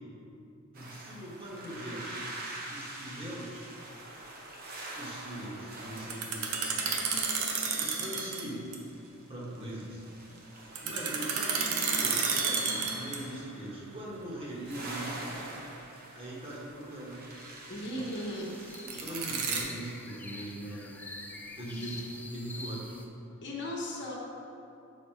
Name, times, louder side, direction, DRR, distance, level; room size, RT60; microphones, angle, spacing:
voice 1, 0.7-2.3 2.7-3.7 5.0-8.7 9.3-10.0 10.4-15.4 16.1-17.3 19.0-21.0 21.6-22.9, right 1 dB, 25° right, -5 dB, 1.3 m, -41 dB
sound 1, 0.7-19.6, right 2 dB, 45° right, 1.0 m, -45 dB
sound 2, 6.0-8.5 8.7-8.8 10.8-13.4 18.7-19.6, right 5 dB, 85° right, 0.8 m, -31 dB
sound 3, 17.3-23.1, left 2 dB, 5° left, 0.4 m, -47 dB
voice 2, 17.7-18.5 18.9-19.0 21.7-22.1 23.4-24.1, left 1 dB, 55° left, -2 dB, 1.0 m, -37 dB
6.8 x 4.2 x 4.6 m, 2.7 s
head